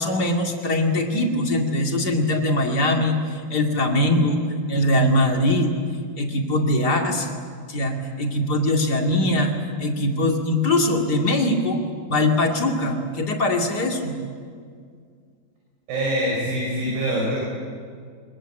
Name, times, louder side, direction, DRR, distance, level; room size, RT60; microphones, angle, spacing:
voice 1, 0.0-4.4 4.7-5.7 6.2-7.3 7.7-11.8 12.1-14.2, left 1 dB, 35° left, 2 dB, 1.9 m, -22 dB
voice 2, 15.9-17.4, equal, 70° right, -4 dB, 7.5 m, -24 dB
23.5 x 21.5 x 8.9 m, 2.1 s
omnidirectional pair, 4.8 m